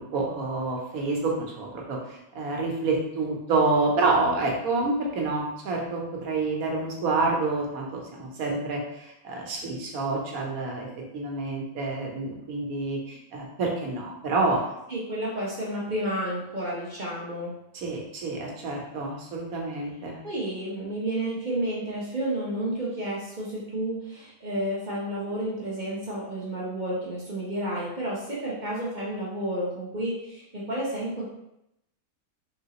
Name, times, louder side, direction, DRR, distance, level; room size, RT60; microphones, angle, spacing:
voice 1, 0.0-10.9 11.1-14.6 17.7-20.2, right 3 dB, 85° right, -1 dB, 1.3 m, -28 dB
voice 2, 14.9-17.5 20.2-31.2, right 1 dB, 35° right, -6 dB, 1.0 m, -31 dB
3.9 x 3.6 x 2.9 m, 0.83 s
omnidirectional pair, 1.5 m